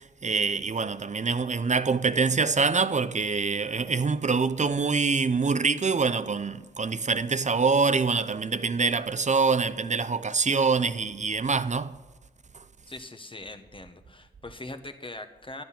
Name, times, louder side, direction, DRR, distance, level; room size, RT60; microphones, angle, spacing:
voice 1, 0.0-11.9, right 4 dB, 40° right, 0.5 m, -25 dB
voice 2, 12.9-15.6, left 2 dB, 30° left, 1.1 m, -41 dB
12.0 x 9.2 x 5.8 m
cardioid pair, 60°, 18 cm